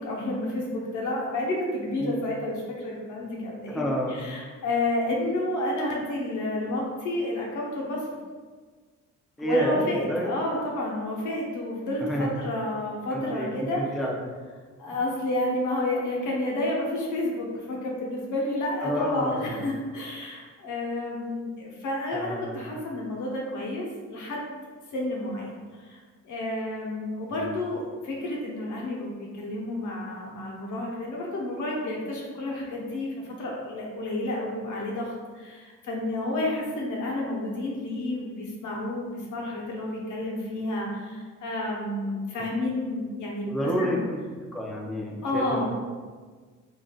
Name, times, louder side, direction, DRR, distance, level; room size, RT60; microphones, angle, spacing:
voice 1, 0.0-3.8 4.1-8.1 9.4-13.8 14.8-24.5 24.9-26.0 26.2-44.0 45.2-45.7, left 1 dB, 80° left, -2 dB, 0.8 m, -30 dB
voice 2, 3.7-4.2 9.4-10.3 12.0-12.3 13.1-13.5 13.8-14.1 18.8-19.7 22.1-22.7 27.3-27.5 43.4-44.2 44.5-45.7, equal, ahead, -2 dB, 0.4 m, -29 dB
3.4 x 2.5 x 2.3 m, 1.5 s
cardioid pair, 90°, 30 cm